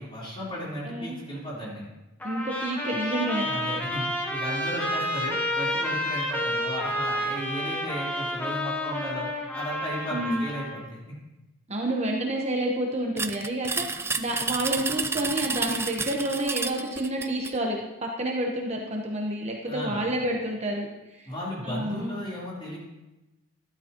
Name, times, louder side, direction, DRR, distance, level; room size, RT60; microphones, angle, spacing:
voice 1, 0.0-1.8 3.4-11.2 19.7-20.1 21.3-22.8, equal, 25° left, -6 dB, 3.7 m, -35 dB
voice 2, 0.8-1.2 2.2-3.5 10.1-10.5 11.7-21.3 21.6-22.2, right 1 dB, 30° right, 0 dB, 1.0 m, -29 dB
Trumpet, 2.2-10.9, left 1 dB, 10° left, 1.3 m, -30 dB
sound 1, 13.2-17.6, right 4 dB, 10° right, 0.3 m, -30 dB
12.5 x 12.0 x 3.0 m, 1.0 s
head